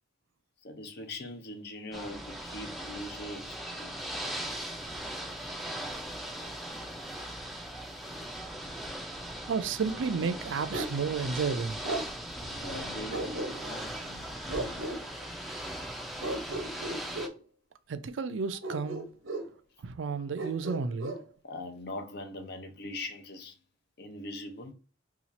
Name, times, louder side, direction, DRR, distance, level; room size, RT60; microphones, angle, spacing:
voice 1, 0.6-3.9 10.2-10.3 12.4-14.3 14.6-14.7 15.2-15.3 21.4-23.6 24.0-24.7, left 2 dB, 55° left, 0.7 m, -42 dB
Ocean / Boat Water vehicle, 1.9-17.3, right 1 dB, ahead, 0.4 m, -39 dB
voice 2, 9.5-11.8 17.9-19.0 19.8-21.2, right 5 dB, 70° right, 0.4 m, -32 dB
Bark, 10.7-11.0 11.8-12.1 13.1-13.8 14.5-15.0 16.2-17.4 18.6-19.5 20.4-21.2, right 1 dB, 85° right, 0.8 m, -35 dB
2.8 x 2.4 x 4.0 m
head